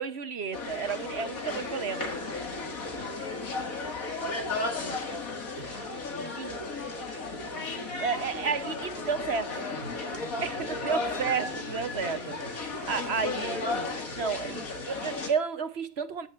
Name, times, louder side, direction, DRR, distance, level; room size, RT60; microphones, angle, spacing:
voice 1, 0.0-2.0 6.4-6.6 8.0-9.4 10.4-13.8 14.2-16.3, right 5 dB, 55° right, 1.1 m, -32 dB
sound 1, 0.5-15.3, left 3 dB, 90° left, 2.5 m, -34 dB
voice 2, 1.9-2.4 2.9-6.1 6.4-7.2 7.6-10.4, left 1 dB, 15° left, 7.7 m, -54 dB
16.0 x 9.8 x 2.5 m
omnidirectional pair, 1.4 m